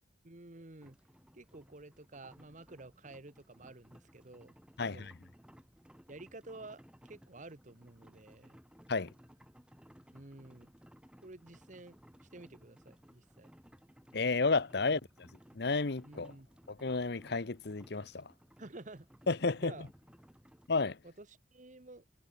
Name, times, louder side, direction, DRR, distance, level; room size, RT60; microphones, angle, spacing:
voice 1, 0.2-1.0 1.3-5.2 6.1-8.6 10.1-10.7 11.2-13.5 14.8-15.0 16.0-16.5 18.6-19.1 19.6-19.9 21.0-22.0, right 2 dB, 45° right, 1.4 m, -51 dB
sound 1, 0.8-20.7, equal, 5° right, 2.6 m, -60 dB
voice 2, 4.8-5.1 8.9-9.1 14.1-15.3 15.5-16.3 16.7-18.3 19.3-19.7 20.7-21.0, left 3 dB, 60° left, 0.9 m, -32 dB
head